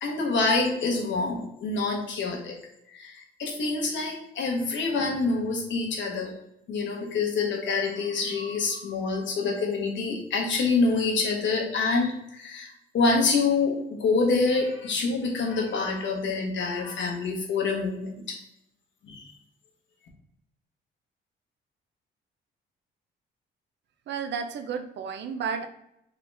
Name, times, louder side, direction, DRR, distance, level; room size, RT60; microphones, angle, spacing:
voice 1, 0.0-2.6 2.9-6.3 6.7-18.4 19.0-19.3, left 3 dB, 70° left, 1 dB, 1.2 m, -26 dB
voice 2, 24.1-25.7, right 6 dB, 65° right, 8 dB, 0.5 m, -32 dB
3.7 x 3.0 x 3.3 m, 0.80 s
cardioid pair, 90°, 20 cm